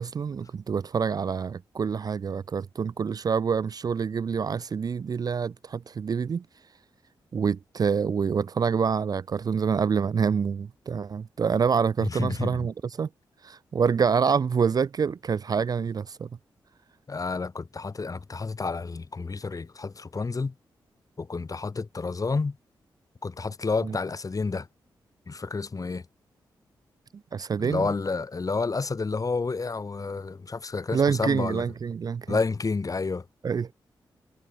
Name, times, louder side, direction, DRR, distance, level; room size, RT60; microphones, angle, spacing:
voice 1, 0.0-6.4 7.3-13.1 13.4-16.3 23.8-24.0 27.3-27.9 30.9-32.4 33.4-33.7, right 6 dB, 45° right, 0.3 m, -26 dB
voice 2, 12.0-12.7 17.1-20.5 21.2-22.6 23.2-24.7 25.3-26.0 27.6-31.6 32.3-33.3, left 4 dB, 40° left, 1.6 m, -30 dB
supercardioid pair, 50°, 9 cm